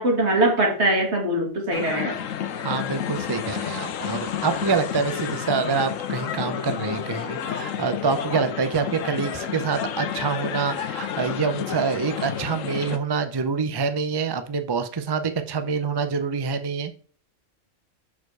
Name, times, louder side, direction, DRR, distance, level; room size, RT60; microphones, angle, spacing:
voice 1, 0.0-2.2, right 1 dB, 60° right, 2 dB, 2.3 m, -22 dB
sound 1, 1.7-13.0, left 8 dB, 85° left, 1.1 m, -30 dB
voice 2, 2.6-16.9, right 5 dB, 35° right, 9 dB, 0.4 m, -26 dB
6.5 x 4.8 x 4.6 m, 0.41 s
omnidirectional pair, 1.3 m